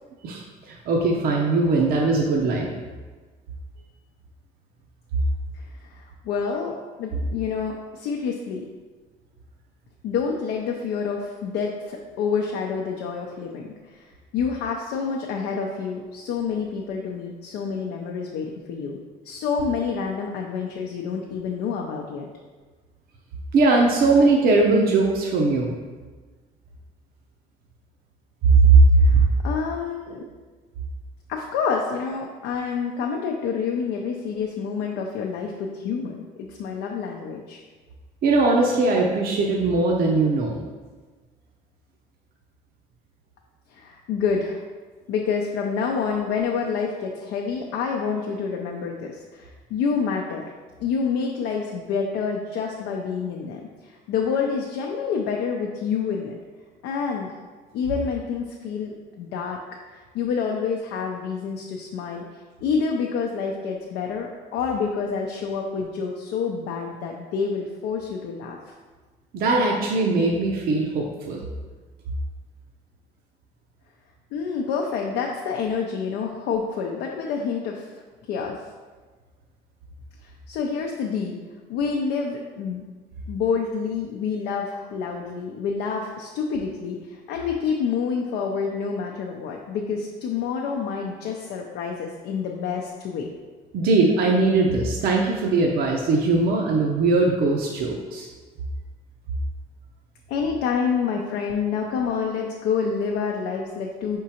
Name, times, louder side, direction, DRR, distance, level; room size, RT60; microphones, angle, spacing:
voice 1, 0.9-2.7 23.5-25.7 28.4-28.8 38.2-40.5 69.3-71.4 93.7-98.3, right 3 dB, 65° right, -1 dB, 0.6 m, -20 dB
voice 2, 5.5-8.6 10.0-19.0 19.2-22.3 29.0-30.2 31.3-37.6 43.7-44.6 45.1-50.4 50.8-56.3 56.8-57.4 57.7-59.6 60.1-62.2 62.6-68.6 74.3-77.9 78.3-78.6 80.2-81.4 81.7-82.8 83.3-93.3 100.3-104.2, left 6 dB, 85° left, 0 dB, 0.5 m, -28 dB
5.0 x 3.6 x 2.8 m, 1.3 s
cardioid pair, 110°, 17 cm